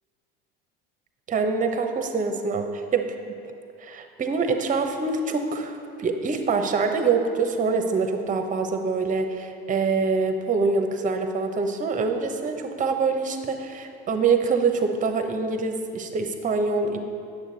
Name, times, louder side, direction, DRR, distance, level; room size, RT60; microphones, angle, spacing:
voice 1, 1.3-3.1 3.8-17.0, right 4 dB, 25° right, 6 dB, 0.9 m, -25 dB
8.7 x 7.1 x 4.0 m, 2.5 s
hypercardioid pair, 85°, 29 cm